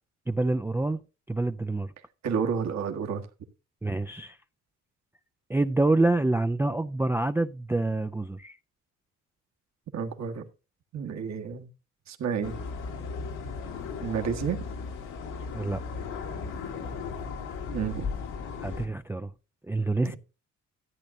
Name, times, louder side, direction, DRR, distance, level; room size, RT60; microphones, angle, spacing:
voice 1, 0.3-1.0 1.3-1.9 3.8-4.4 5.5-8.6 15.5-15.8 18.6-19.3 19.7-20.2, right 2 dB, 10° right, 0.4 m, -26 dB
voice 2, 2.2-3.2 9.9-10.5 10.9-11.7 12.1-12.6 14.0-14.6 17.7-18.1 20.0-20.2, right 7 dB, 65° right, 1.6 m, -30 dB
sound 1, 12.4-18.9, left 5 dB, 90° left, 2.2 m, -36 dB
14.0 x 8.5 x 2.7 m
cardioid pair, 90°, 30 cm